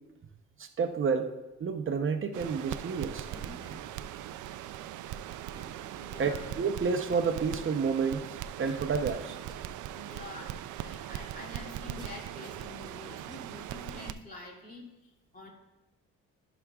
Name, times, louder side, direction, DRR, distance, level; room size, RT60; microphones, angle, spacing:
voice 1, 0.6-1.3 1.6-3.3 6.2-8.2 8.6-9.4, right 5 dB, 40° right, 6 dB, 0.7 m, -29 dB
Crackle, 2.3-14.1, right 11 dB, 75° right, 0.5 m, -40 dB
sound 1, 3.3-4.0 5.5-6.8 7.5-7.6 8.6-9.2 9.5-9.6 12.0-13.4, right 2 dB, 15° right, 1.9 m, -50 dB
voice 2, 5.9-6.4 9.7-15.5, left 2 dB, 30° left, -2 dB, 2.5 m, -47 dB
14.5 x 6.1 x 2.3 m, 1.0 s
cardioid pair, 90°, 30 cm